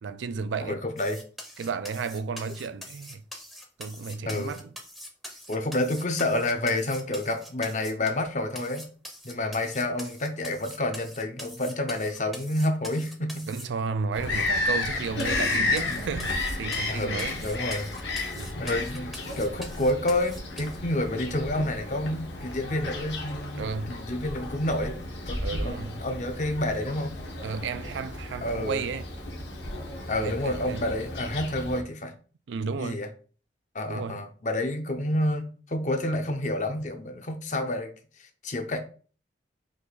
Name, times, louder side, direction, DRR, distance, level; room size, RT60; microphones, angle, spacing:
voice 1, 0.0-0.8 1.6-3.2 3.8-4.7 13.5-17.4 18.3-18.5 23.5-24.0 25.4-26.0 27.4-29.1 30.2-30.8 32.5-33.1 33.9-34.2, right 5 dB, 80° right, 0.4 m, -33 dB
voice 2, 0.6-1.2 4.2-4.6 5.5-8.9 9.2-13.5 14.3-14.6 15.8-16.0 16.9-17.9 18.6-25.0 25.3-27.1 28.4-28.9 30.1-32.1 32.8-33.1 33.7-37.9 38.2-38.8, left 1 dB, 40° left, 0.7 m, -29 dB
sound 1, 1.0-8.3 8.5-13.6 14.2-14.3 14.7-14.8 15.2-20.8, equal, ahead, 0.6 m, -44 dB
Bird vocalization bird call bird song, 14.1-31.8, left 2 dB, 65° left, 1.1 m, -33 dB
4.8 x 2.6 x 4.0 m
head